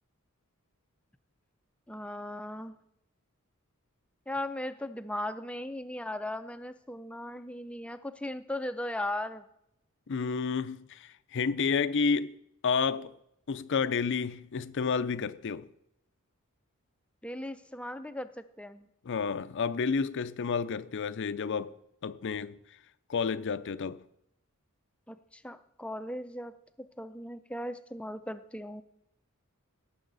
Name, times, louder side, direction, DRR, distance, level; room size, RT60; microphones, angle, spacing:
voice 1, 1.9-2.7 4.3-9.5 17.2-18.9 25.1-28.8, left 1 dB, 5° left, 0.5 m, -38 dB
voice 2, 10.1-12.4 12.6-13.1 13.5-15.7 19.0-21.7 22.0-22.6 23.1-24.0, left 5 dB, 60° left, 0.5 m, -30 dB
18.0 x 7.1 x 4.0 m
head